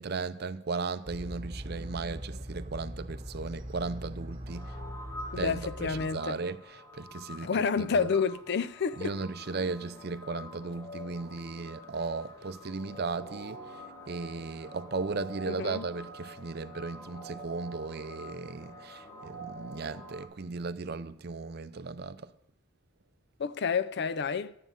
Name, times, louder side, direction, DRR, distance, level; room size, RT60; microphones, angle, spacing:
voice 1, 0.0-4.8 5.4-7.5 7.8-8.1 9.0-22.3, right 4 dB, 55° right, 0.6 m, -36 dB
sound 1, 1.0-6.1, equal, 30° right, 2.1 m, -41 dB
sound 2, 4.5-20.2, equal, 15° left, 1.2 m, -47 dB
voice 2, 5.3-6.4 7.4-9.1 15.5-15.9 23.4-24.6, left 5 dB, 55° left, 0.5 m, -29 dB
13.0 x 9.6 x 5.4 m
head